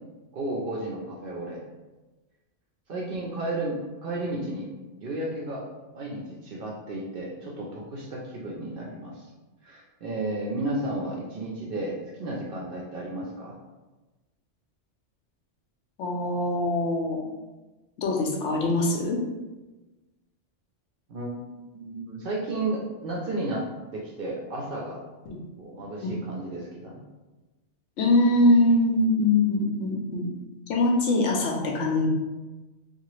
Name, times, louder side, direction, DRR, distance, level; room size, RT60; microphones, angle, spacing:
voice 1, 0.3-1.6 2.9-4.7 5.0-5.6 5.9-9.3 9.6-13.6 21.1-23.7 23.9-25.0 25.6-27.0, right 2 dB, 60° right, -3 dB, 0.6 m, -33 dB
voice 2, 16.0-17.3 18.0-19.2 25.3-25.4 26.0-26.1 28.0-30.3 30.7-32.1, left 2 dB, 80° left, 0 dB, 0.9 m, -23 dB
2.8 x 2.4 x 3.0 m, 1.2 s
omnidirectional pair, 1.2 m